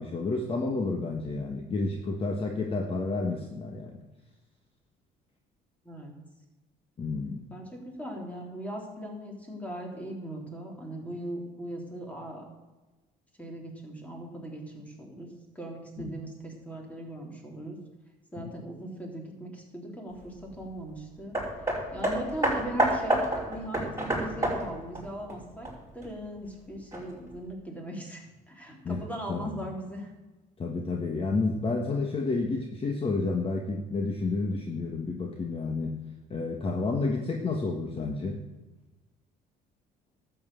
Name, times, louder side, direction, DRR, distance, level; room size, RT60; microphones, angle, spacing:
voice 1, 0.0-4.0 7.0-7.4 16.0-16.2 18.4-18.6 28.8-29.6 30.6-35.9 36.3-38.4, left 3 dB, 35° left, 2 dB, 1.5 m, -30 dB
voice 2, 7.5-12.4 13.4-15.3 15.6-17.8 18.3-21.4 21.9-30.1, right 1 dB, 10° left, 0 dB, 3.6 m, -39 dB
Hammer, 21.3-26.1 26.9-27.0, right 1 dB, 15° right, 5.4 m, -29 dB
12.0 x 7.8 x 7.6 m, 1.2 s
cardioid pair, 110°, 17 cm